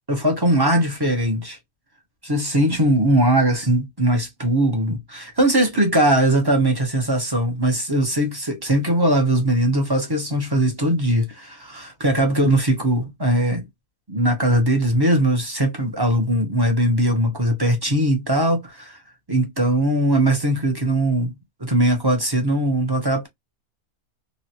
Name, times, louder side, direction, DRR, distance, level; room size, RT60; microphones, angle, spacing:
voice 1, 0.1-1.6 2.2-13.6 14.1-19.0 19.3-21.3 21.6-23.3, right 1 dB, 25° right, 0.5 m, -20 dB
3.0 x 2.3 x 2.7 m
omnidirectional pair, 1.5 m